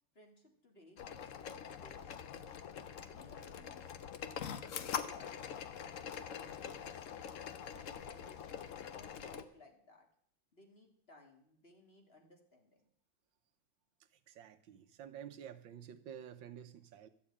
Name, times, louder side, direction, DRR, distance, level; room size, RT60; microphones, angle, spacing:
voice 1, 0.1-2.3 3.0-7.0 7.5-7.7 8.0-10.1 10.5-12.9, left 2 dB, 35° left, 2 dB, 1.9 m, -62 dB
sound 1, 1.0-9.4, left 8 dB, 55° left, 0.9 m, -44 dB
voice 2, 14.3-17.1, right 9 dB, 80° right, 9 dB, 1.6 m, -50 dB
12.5 x 7.3 x 8.5 m, 0.69 s
omnidirectional pair, 2.1 m